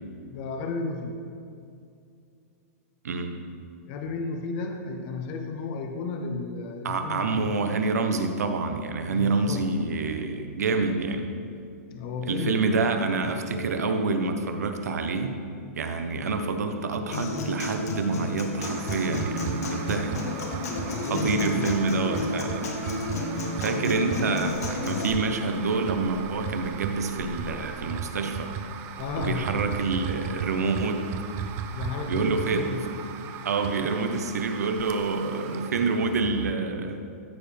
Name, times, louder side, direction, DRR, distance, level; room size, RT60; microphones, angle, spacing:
voice 1, 0.3-1.2 3.9-7.6 9.0-9.6 11.9-12.6 20.7-21.8 23.4-24.0 29.0-29.5 31.7-32.8, left 4 dB, 40° left, 4 dB, 0.7 m, -33 dB
voice 2, 6.8-11.3 12.2-15.4 15.8-20.2 21.1-22.7 23.6-28.5 29.2-31.1 32.1-32.8 33.4-37.1, right 3 dB, 90° right, 6 dB, 0.9 m, -27 dB
Human voice / Acoustic guitar, 17.1-25.1, left 2 dB, 75° left, 1.4 m, -31 dB
sound 1, 18.6-36.6, right 8 dB, 30° right, 0.4 m, -37 dB
13.5 x 4.8 x 3.4 m, 2.5 s
hypercardioid pair, 150°, 8 cm